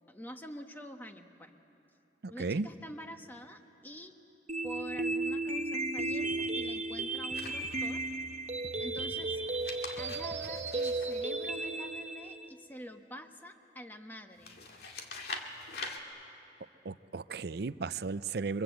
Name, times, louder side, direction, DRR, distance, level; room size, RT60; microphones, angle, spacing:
voice 1, 0.1-1.5 2.3-4.2 4.6-8.0 8.8-9.4 10.0-14.5, equal, 10° left, 5 dB, 1.3 m, -46 dB
voice 2, 2.2-2.7 16.8-18.6, right 4 dB, 65° right, 15 dB, 0.6 m, -35 dB
sound 1, 4.5-12.5, right 2 dB, 40° right, 1.0 m, -34 dB
sound 2, 4.6-5.4 6.0-8.3 8.6-11.0, equal, 35° left, 6.4 m, -51 dB
paper sheets flip through turn page nice various, 7.3-8.1 9.4-12.0 14.4-16.0, left 3 dB, 60° left, 2.3 m, -44 dB
30.0 x 24.0 x 8.1 m, 2.7 s
head